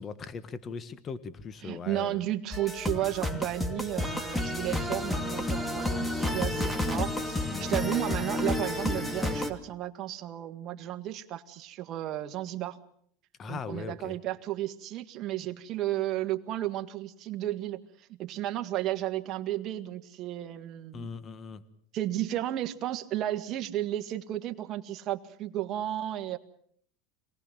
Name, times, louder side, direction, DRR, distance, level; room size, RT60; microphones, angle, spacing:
voice 1, 0.0-2.2 7.5-7.9 13.4-14.2 20.9-21.6, left 5 dB, 30° left, 14 dB, 1.5 m, -39 dB
voice 2, 1.6-12.8 13.5-21.1 21.9-26.4, right 13 dB, 45° right, 7 dB, 1.8 m, -33 dB
sound 1, 2.5-9.5, left 1 dB, 10° left, 2.5 m, -31 dB
26.5 x 19.0 x 7.5 m, 0.64 s
supercardioid pair, 130°, 0 cm